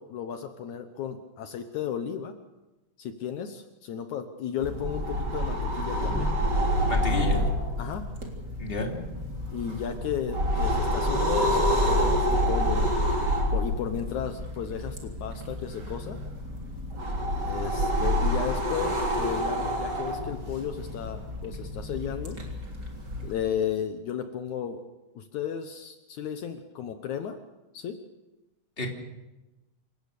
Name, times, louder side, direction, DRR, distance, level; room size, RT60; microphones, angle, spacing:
voice 1, 0.0-2.3 3.0-6.3 7.1-7.5 7.8-8.1 9.5-12.9 13.5-16.2 17.4-22.4 23.2-24.8 25.2-27.4 27.7-28.0, left 8 dB, 70° left, 7 dB, 2.4 m, -34 dB
sound 1, 4.6-23.3, equal, 30° right, 3.8 m, -28 dB
voice 2, 6.9-7.4 8.6-8.9 28.8-28.9, left 1 dB, 15° left, 1 dB, 3.3 m, -30 dB
28.0 x 17.0 x 6.8 m, 1.0 s
omnidirectional pair, 3.7 m